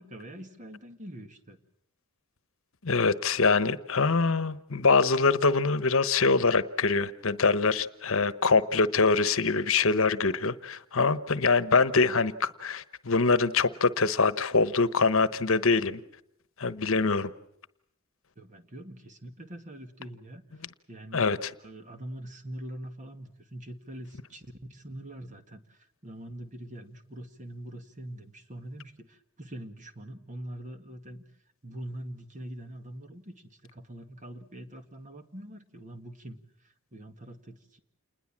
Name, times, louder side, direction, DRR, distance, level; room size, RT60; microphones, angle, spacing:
voice 1, 0.0-1.6 18.4-20.6 20.9-21.3 21.6-31.2 31.6-37.8, right 1 dB, 35° right, 7 dB, 2.0 m, -43 dB
voice 2, 2.8-16.0 16.6-17.3 21.1-21.5, left 4 dB, 65° left, 14 dB, 1.1 m, -24 dB
28.5 x 20.5 x 7.4 m, 0.72 s
head